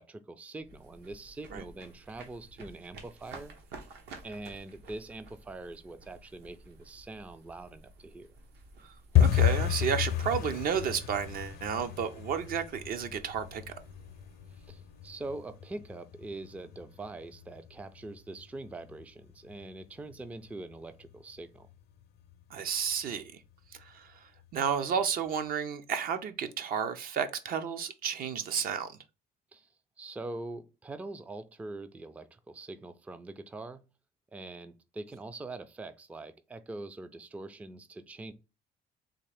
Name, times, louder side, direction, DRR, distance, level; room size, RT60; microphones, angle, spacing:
voice 1, 0.0-3.5 4.2-8.3 14.6-21.7 29.5-29.7 30.0-33.8 34.3-38.3, right 2 dB, 10° right, 0.3 m, -43 dB
sound 1, 0.6-15.7, right 3 dB, 80° right, 1.0 m, -53 dB
voice 2, 8.8-13.7 22.5-23.4 23.8-28.9, right 7 dB, 60° right, 0.6 m, -32 dB
sound 2, 9.1-19.9 20.1-20.8 21.1-21.4 21.6-22.0 22.3-22.4 22.9-23.5 23.8-23.9 24.4-24.5, left 10 dB, 65° left, 0.6 m, -32 dB
3.6 x 2.4 x 3.3 m
cardioid pair, 110°, 17 cm